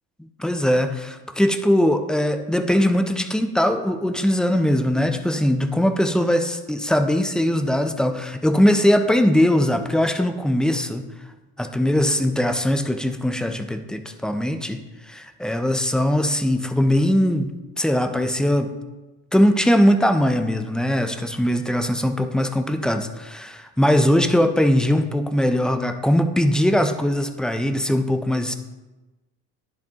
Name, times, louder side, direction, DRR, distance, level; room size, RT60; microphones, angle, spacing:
voice 1, 0.4-11.0 11.6-14.8 15.1-18.7 19.3-28.5, equal, ahead, 6 dB, 0.4 m, -20 dB
10.5 x 4.7 x 2.8 m, 1.1 s
cardioid pair, 105°, 38 cm